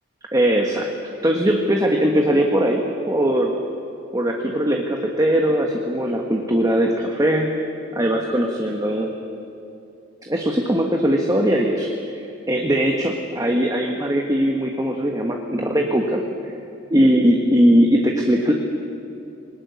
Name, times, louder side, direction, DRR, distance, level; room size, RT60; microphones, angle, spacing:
voice 1, 0.3-0.9 1.2-3.6 4.1-7.6 7.9-9.1 10.2-16.2 16.9-18.5, equal, 20° right, 1 dB, 1.4 m, -20 dB
21.0 x 18.5 x 9.6 m, 2.7 s
head